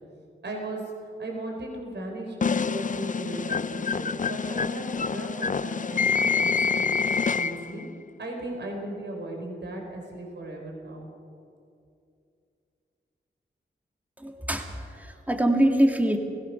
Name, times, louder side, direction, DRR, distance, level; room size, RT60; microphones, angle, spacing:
voice 1, 0.4-6.9 7.4-7.8 8.2-11.1, right 1 dB, 65° right, 0 dB, 4.5 m, -36 dB
sound 1, 2.4-7.8, left 5 dB, 40° left, 0.5 m, -27 dB
voice 2, 14.2-16.2, right 1 dB, 10° right, 3 dB, 2.2 m, -24 dB
27.5 x 16.5 x 5.9 m, 2.5 s
cardioid pair, 50°, 20 cm